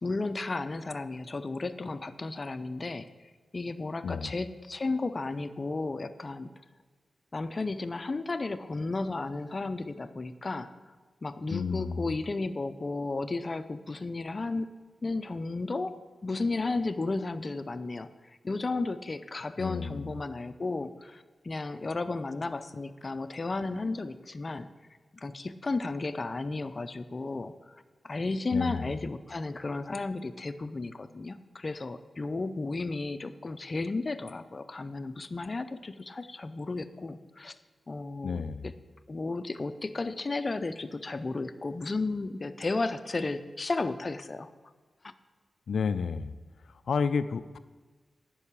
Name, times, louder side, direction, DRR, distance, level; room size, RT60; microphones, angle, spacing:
voice 1, 0.0-3.1 3.5-6.5 7.3-10.7 11.2-14.7 15.0-24.7 25.1-27.8 28.0-37.6 37.9-38.4 39.1-44.5 45.0-45.1, left 3 dB, 40° left, 12 dB, 0.6 m, -33 dB
voice 2, 4.0-4.3 11.5-12.1 19.6-20.2 28.5-29.1 38.2-38.7 45.7-46.3 46.9-47.6, left 5 dB, 85° left, 13 dB, 0.4 m, -31 dB
10.5 x 5.5 x 8.4 m, 1.4 s
cardioid pair, 75°, 0 cm